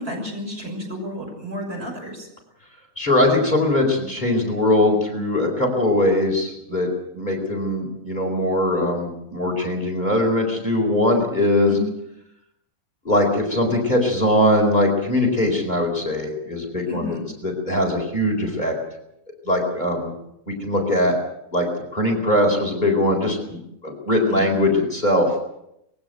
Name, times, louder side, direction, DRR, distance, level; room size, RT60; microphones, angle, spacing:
voice 1, 0.0-2.3 11.7-11.8 16.9-17.2 24.1-24.5, left 1 dB, 40° right, 0 dB, 6.8 m, -31 dB
voice 2, 3.0-6.9 7.1-11.8 13.0-17.2 17.4-18.7 19.5-20.1 20.5-21.2 21.5-21.7 21.9-25.3, left 1 dB, 30° left, 1 dB, 4.6 m, -21 dB
22.0 x 16.0 x 7.9 m, 0.80 s
omnidirectional pair, 1.6 m